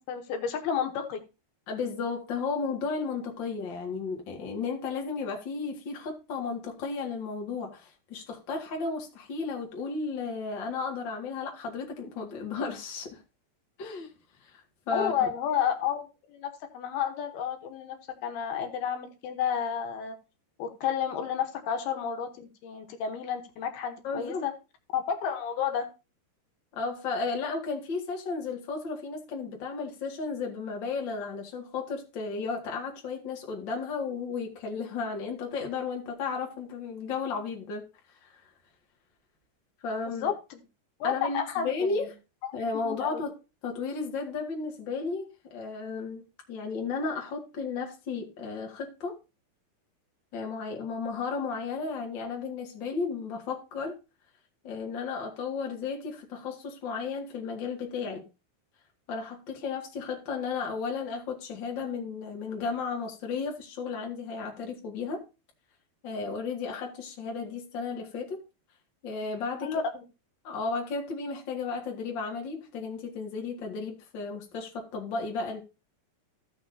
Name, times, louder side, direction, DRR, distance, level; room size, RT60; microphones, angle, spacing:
voice 1, 0.1-1.2 14.9-18.0 18.2-20.2 20.6-24.5 24.9-25.9 40.1-40.6 41.0-42.1 42.4-42.5 42.8-43.2 69.6-70.0, left 8 dB, 80° left, 3.0 m, -31 dB
voice 2, 1.7-13.2 13.8-14.1 14.4-14.5 14.9-15.3 24.0-24.4 26.7-37.9 38.2-38.3 39.8-40.3 41.0-42.1 42.5-43.3 43.6-46.2 46.5-49.2 50.3-54.0 54.6-58.3 59.1-65.2 66.0-68.4 69.0-69.7 70.4-75.6, left 4 dB, 40° left, 1.9 m, -34 dB
15.5 x 6.1 x 2.7 m
omnidirectional pair, 4.5 m